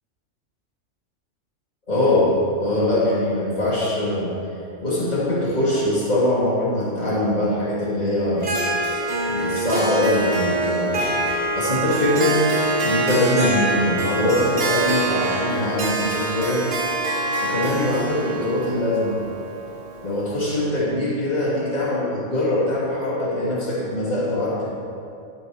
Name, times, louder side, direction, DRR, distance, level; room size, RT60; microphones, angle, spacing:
voice 1, 1.9-4.3 4.8-8.5 9.3-11.1 11.5-12.5 12.8-16.7 17.4-19.2 20.0-24.7, left 1 dB, 35° left, -8 dB, 2.4 m, -22 dB
Harp, 8.4-20.2, right 2 dB, 50° right, 1.3 m, -25 dB
12.0 x 4.7 x 4.8 m, 2.7 s
omnidirectional pair, 1.3 m